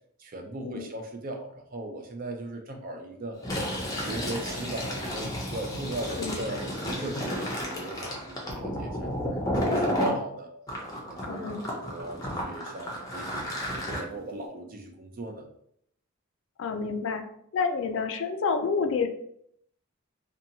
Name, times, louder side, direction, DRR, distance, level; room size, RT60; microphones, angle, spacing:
voice 1, 0.2-3.4 4.0-10.5 11.1-15.5, right 1 dB, 40° right, 2 dB, 0.4 m, -38 dB
Fill (with liquid), 3.3-10.2 10.7-14.0, equal, 15° left, 0.5 m, -32 dB
voice 2, 6.2-6.6 11.2-11.6 16.6-17.2 17.5-19.1, left 5 dB, 65° left, 7 dB, 0.3 m, -29 dB
2.7 x 2.2 x 2.7 m, 0.71 s
head